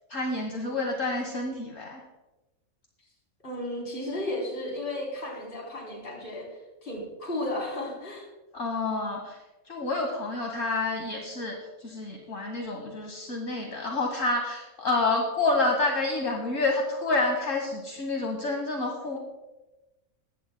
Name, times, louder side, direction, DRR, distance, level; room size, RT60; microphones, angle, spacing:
voice 1, 0.1-2.0 8.5-9.4 9.7-19.2, left 2 dB, 65° left, 1 dB, 1.8 m, -28 dB
voice 2, 3.4-6.5 6.8-8.3, left 1 dB, 40° left, -2 dB, 3.8 m, -34 dB
20.0 x 15.0 x 2.2 m, 1.1 s
omnidirectional pair, 1.5 m